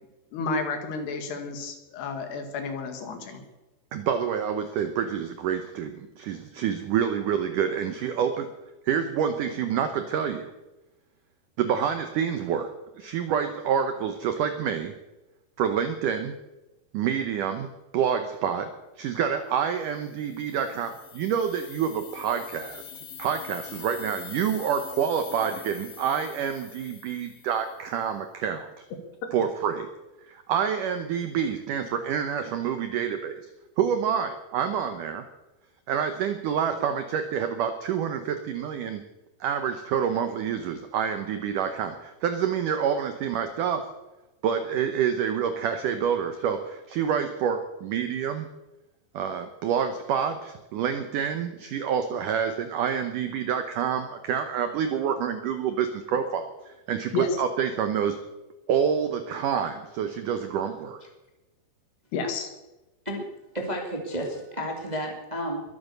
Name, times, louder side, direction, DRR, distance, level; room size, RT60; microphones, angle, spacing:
voice 1, 0.3-3.4 57.1-57.3 62.1-62.5, left 4 dB, 70° left, 6 dB, 3.9 m, -31 dB
voice 2, 3.9-8.5 8.8-10.5 11.6-12.7 13.0-14.9 15.6-16.3 16.9-28.9 29.3-29.9 30.3-33.4 33.8-35.3 35.9-39.0 39.4-43.9 44.4-48.5 49.1-58.2 58.7-61.0, right 8 dB, 85° right, 8 dB, 1.8 m, -27 dB
sound 1, 20.0-27.9, left 8 dB, 90° left, 1.2 m, -44 dB
voice 3, 63.5-65.6, equal, 15° right, 1 dB, 1.3 m, -31 dB
22.0 x 9.0 x 6.7 m, 1.0 s
omnidirectional pair, 5.1 m